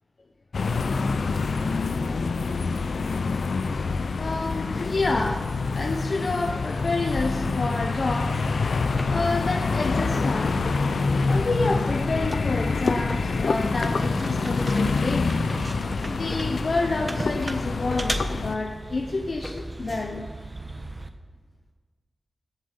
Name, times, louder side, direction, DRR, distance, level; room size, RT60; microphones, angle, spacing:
sound 1, 0.5-18.6, left 4 dB, 90° left, 0.6 m, -26 dB
voice 1, 3.2-3.5 3.8-3.9 4.2-8.4 9.1-10.6 11.2-15.4 16.0-20.3, left 3 dB, 70° left, 2 dB, 1.0 m, -29 dB
sound 2, 7.1-21.1, right 2 dB, 35° right, 1.2 m, -38 dB
sound 3, 9.0-9.4 11.3-11.7 13.1-13.5 14.6-15.0 16.3-16.7 17.9-18.4 19.4-19.8, equal, 15° left, 1.5 m, -39 dB
15.5 x 7.7 x 5.3 m, 1.5 s
cardioid pair, 45°, 0 cm